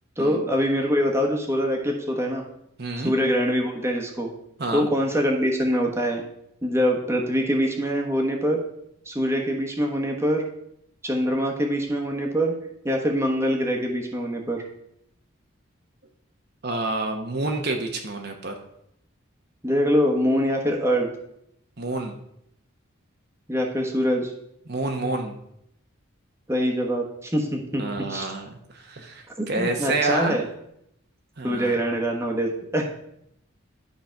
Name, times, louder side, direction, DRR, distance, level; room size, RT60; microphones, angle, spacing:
voice 1, 0.2-2.4 3.0-4.3 4.7-6.2 6.6-8.6 9.0-10.4 11.0-12.5 12.8-14.6 19.6-21.1 23.5-24.3 26.5-28.3 29.4-30.4 31.4-32.9, equal, 15° right, 0 dB, 1.2 m, -24 dB
voice 2, 2.8-3.1 4.6-4.9 16.6-18.5 21.8-22.1 24.7-25.4 27.8-30.4 31.4-31.7, right 2 dB, 50° right, 3 dB, 0.9 m, -28 dB
11.5 x 4.0 x 5.8 m, 0.76 s
head